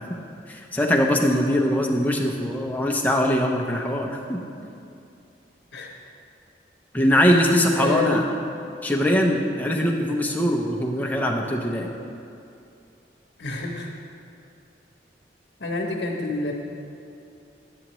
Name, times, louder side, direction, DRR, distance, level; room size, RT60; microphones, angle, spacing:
voice 1, 0.5-4.4 6.9-8.3 8.8-11.9, equal, 10° left, 0 dB, 0.6 m, -22 dB
voice 2, 7.8-8.3 13.4-13.9 15.6-16.5, left 3 dB, 80° left, -1 dB, 0.9 m, -28 dB
10.0 x 8.4 x 3.0 m, 2.7 s
head